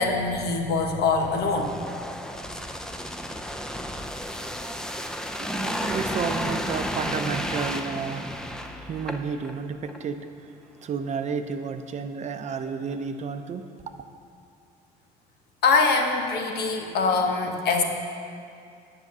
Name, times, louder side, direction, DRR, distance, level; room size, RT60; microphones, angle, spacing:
voice 1, 0.0-1.8 15.6-17.8, left 4 dB, 70° left, 3 dB, 1.2 m, -23 dB
sound 1, 1.2-9.5 9.9-10.0, equal, 5° left, 0.5 m, -32 dB
voice 2, 5.3-10.5 10.8-13.7, right 5 dB, 45° right, 8 dB, 0.6 m, -32 dB
8.3 x 5.8 x 7.3 m, 2.4 s
cardioid pair, 110°, 17 cm